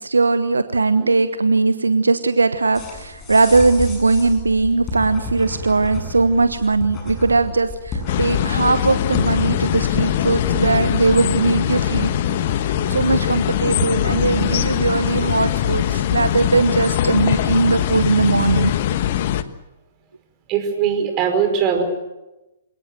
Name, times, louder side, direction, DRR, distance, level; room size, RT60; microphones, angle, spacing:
voice 1, 0.0-12.1 12.6-18.7, right 3 dB, 75° right, 11 dB, 1.1 m, -19 dB
sound 1, 2.7-18.8, left 2 dB, 20° left, 7.9 m, -32 dB
sound 2, 8.1-19.4, left 11 dB, 45° left, 1.2 m, -21 dB
voice 2, 20.5-21.8, right 7 dB, 30° right, 6 dB, 5.1 m, -20 dB
27.0 x 18.5 x 7.7 m, 1.0 s
figure-of-eight pair, 120°, 0 cm